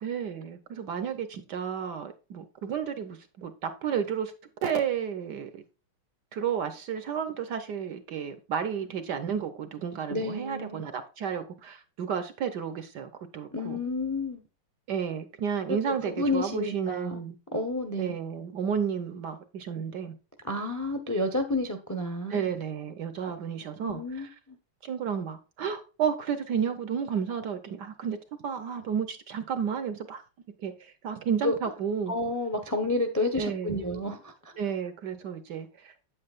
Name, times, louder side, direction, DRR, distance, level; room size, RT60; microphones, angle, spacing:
voice 1, 0.0-4.3 4.6-5.6 6.3-13.8 14.9-17.4 18.0-20.1 22.3-24.3 24.8-28.2 28.4-30.2 30.6-32.1 33.4-34.0 34.6-35.9, right 7 dB, 60° right, 1.2 m, -32 dB
voice 2, 10.1-10.8 13.5-14.4 16.0-17.2 17.5-18.2 20.4-22.5 23.8-24.6 31.4-31.5 32.1-34.3, left 2 dB, 15° left, 0.5 m, -30 dB
8.7 x 8.4 x 2.4 m
omnidirectional pair, 2.3 m